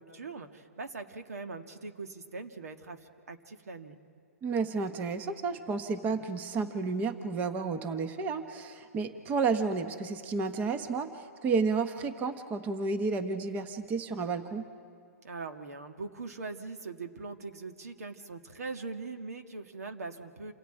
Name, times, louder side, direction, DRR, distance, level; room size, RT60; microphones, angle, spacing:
voice 1, 0.0-4.0 15.2-20.5, right 3 dB, 80° right, 6 dB, 1.7 m, -41 dB
voice 2, 4.4-14.6, right 4 dB, 20° right, 8 dB, 1.0 m, -31 dB
28.0 x 14.0 x 9.1 m, 2.2 s
hypercardioid pair, 145°, 8 cm